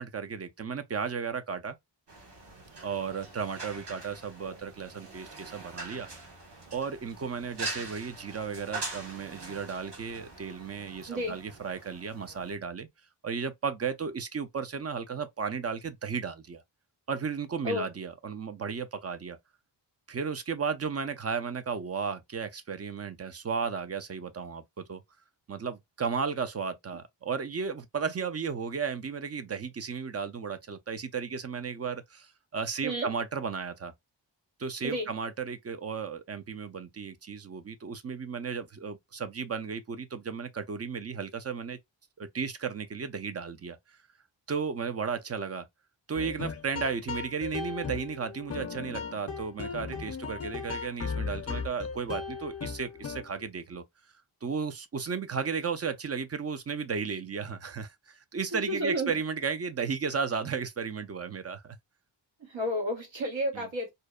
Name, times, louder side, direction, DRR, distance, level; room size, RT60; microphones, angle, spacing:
voice 1, 0.0-1.8 2.8-6.1 6.7-12.9 13.2-16.6 17.1-19.4 20.1-25.0 25.5-33.9 34.6-41.8 42.2-43.8 44.5-45.7 46.1-53.8 54.4-61.8 63.5-63.7, right 6 dB, 35° right, 0.4 m, -34 dB
sound 1, 2.1-12.5, right 2 dB, 60° right, 1.2 m, -43 dB
voice 2, 11.1-11.4 17.6-17.9 32.8-33.1 34.8-35.1 58.5-59.1 62.5-63.9, equal, 80° right, 1.1 m, -31 dB
sound 2, 46.1-53.5, left 5 dB, 35° left, 0.5 m, -37 dB
2.7 x 2.0 x 2.2 m
wide cardioid pair, 65°, 45 cm